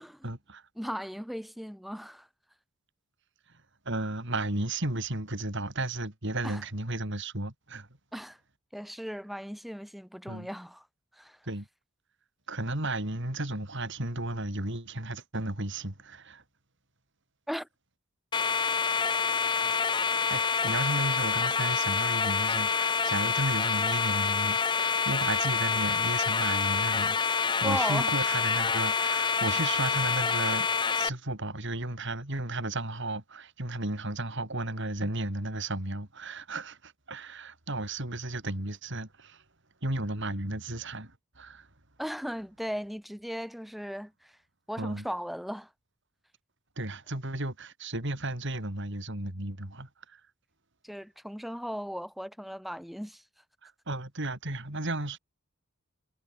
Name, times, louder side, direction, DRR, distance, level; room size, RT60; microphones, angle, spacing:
voice 1, 0.2-0.6 3.5-7.9 10.3-10.5 11.5-11.7 12.5-16.4 18.9-19.0 19.3-19.5 19.8-30.7 30.9-39.4 39.8-41.7 44.8-45.1 46.8-50.2 53.6-55.2, right 2 dB, 60° right, 4.4 m, -34 dB
voice 2, 0.8-2.3 6.4-6.6 8.1-8.4 8.7-10.8 11.2-11.4 17.5-17.7 27.6-28.1 42.0-44.3 44.7-45.7 50.8-53.2, equal, ahead, 6.0 m, -37 dB
sound 1, 18.3-31.1, left 5 dB, 20° left, 0.6 m, -27 dB
head